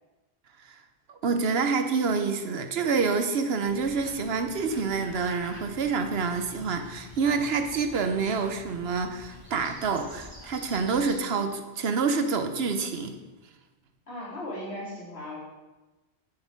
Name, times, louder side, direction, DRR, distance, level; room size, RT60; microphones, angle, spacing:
voice 1, 1.1-13.2, right 5 dB, 75° right, 7 dB, 1.1 m, -27 dB
sound 1, 3.6-11.1, left 1 dB, 20° right, 1.6 m, -47 dB
voice 2, 14.1-15.4, left 1 dB, 75° left, -8 dB, 4.1 m, -37 dB
7.6 x 7.5 x 5.1 m, 1.1 s
omnidirectional pair, 1.1 m